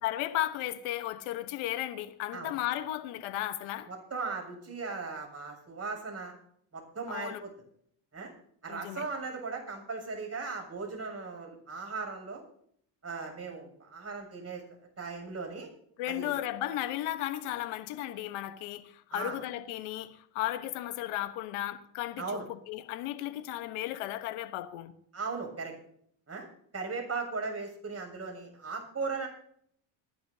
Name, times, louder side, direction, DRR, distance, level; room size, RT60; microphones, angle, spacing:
voice 1, 0.0-3.9 7.1-7.4 8.7-9.0 16.0-24.9, left 14 dB, 85° left, 1.2 m, -35 dB
voice 2, 3.9-6.3 6.7-7.5 8.1-8.3 8.6-12.4 13.0-14.6 15.0-15.7 16.1-16.3 19.1-19.4 22.2-22.5 25.1-25.7 26.3-26.5 26.7-29.3, right 4 dB, 30° right, 7.3 m, -37 dB
27.0 x 11.0 x 2.8 m
supercardioid pair, 75°, 49 cm